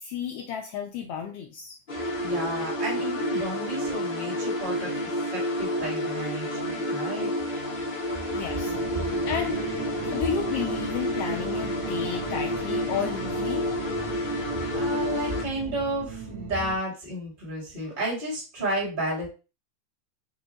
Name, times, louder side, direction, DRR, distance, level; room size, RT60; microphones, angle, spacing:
voice 1, 0.0-1.8 8.3-8.7 9.0-9.6 10.1-13.7, left 8 dB, 85° left, 2 dB, 1.3 m, -32 dB
sound 1, 1.9-15.4, equal, 40° left, 0.7 m, -30 dB
voice 2, 2.2-4.9 5.3-7.3 14.7-19.3, right 1 dB, 25° right, -4 dB, 1.3 m, -32 dB
sound 2, 8.6-16.8, right 4 dB, 65° right, 1.7 m, -38 dB
4.8 x 2.3 x 3.8 m, 0.32 s
omnidirectional pair, 3.3 m